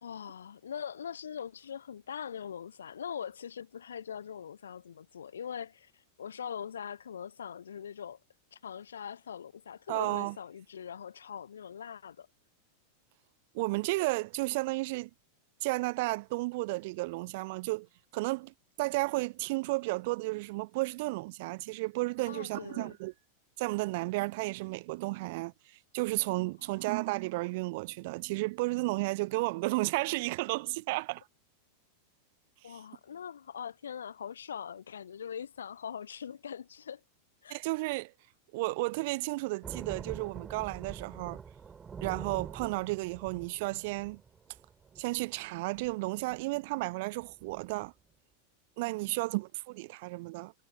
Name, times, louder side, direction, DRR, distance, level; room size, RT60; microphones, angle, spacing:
voice 1, 0.0-8.2 8.5-12.3 22.3-23.0 32.6-37.0 37.4-37.6 49.1-49.2, left 8 dB, 65° left, 1.0 m, -42 dB
voice 2, 9.9-10.4 13.5-15.1 15.6-17.9 18.1-23.1 23.6-25.5 25.9-31.2 32.6-32.7 37.5-38.1 38.5-41.4 42.0-44.2 45.0-47.9 48.8-50.5, right 23 dB, 50° right, 0.5 m, -33 dB
sound 1, 39.6-45.4 45.7-45.9 46.3-46.6 46.9-47.0 47.2-47.9, right 6 dB, 20° right, 4.1 m, -45 dB
figure-of-eight pair, 90°, 0 cm